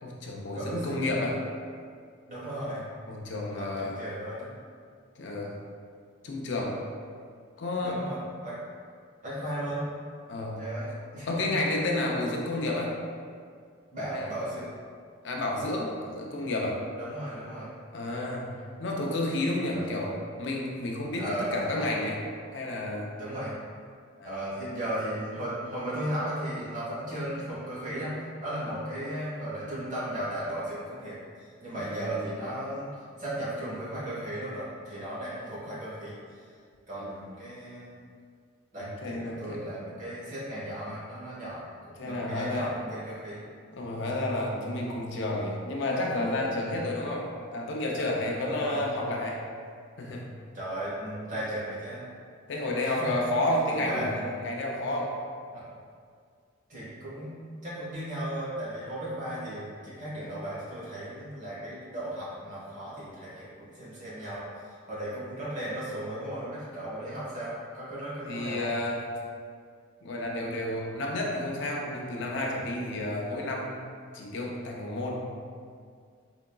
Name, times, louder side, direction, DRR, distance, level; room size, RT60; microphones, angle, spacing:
voice 1, 0.0-1.4 3.1-4.0 5.2-5.5 6.2-6.8 7.6-8.0 10.3-10.7 11.3-13.0 14.1-14.3 15.2-16.8 17.9-22.2 22.5-23.1 24.2-24.4 31.8-32.2 36.9-37.1 38.8-39.7 42.0-42.8 43.7-49.4 50.0-50.3 52.5-55.2 60.2-60.4 68.3-69.1 70.0-73.8 74.1-75.2, left 1 dB, 60° left, -1 dB, 0.5 m, -31 dB
voice 2, 0.5-1.0 2.3-2.8 3.5-4.6 7.8-8.6 9.2-9.9 10.6-11.6 13.9-14.7 17.0-17.7 19.7-19.8 21.2-21.9 23.2-23.5 24.2-32.9 33.2-36.5 36.9-38.0 38.7-43.4 48.4-48.8 50.5-52.1 52.8-53.2 53.7-54.3 55.5-55.6 56.7-68.7, right 1 dB, 40° right, -9 dB, 1.2 m, -36 dB
3.7 x 3.4 x 2.2 m, 2.1 s
head